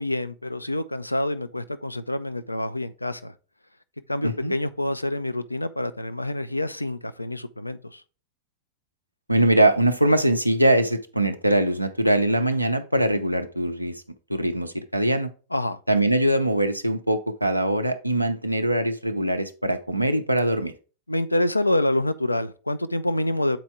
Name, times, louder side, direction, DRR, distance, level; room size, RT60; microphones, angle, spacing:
voice 1, 0.0-3.3 4.1-8.0 15.5-15.8 21.1-23.6, left 1 dB, 85° left, 0.4 m, -27 dB
voice 2, 4.2-4.5 9.3-13.9 14.3-15.3 15.9-20.7, right 1 dB, 90° right, 0.6 m, -22 dB
7.4 x 4.3 x 3.6 m
figure-of-eight pair, 90°, 0 cm